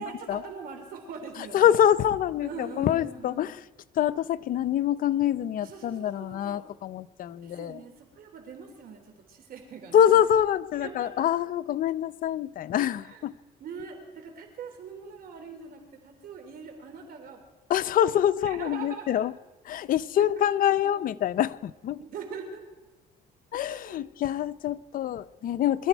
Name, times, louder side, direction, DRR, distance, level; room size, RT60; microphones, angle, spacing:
voice 1, 0.0-1.8 2.4-3.5 5.6-6.7 7.4-10.2 10.8-11.3 13.0-13.2 13.6-17.4 18.4-19.2 20.2-20.3 20.8-21.0 22.0-22.6 23.6-24.1 25.1-25.2, right 5 dB, 60° right, 5 dB, 3.5 m, -42 dB
voice 2, 1.5-3.5 4.0-7.8 9.9-13.3 17.7-19.3 19.7-22.0 23.5-25.9, left 10 dB, 55° left, 12 dB, 0.7 m, -25 dB
23.5 x 13.0 x 4.6 m, 1.1 s
cardioid pair, 110°, 17 cm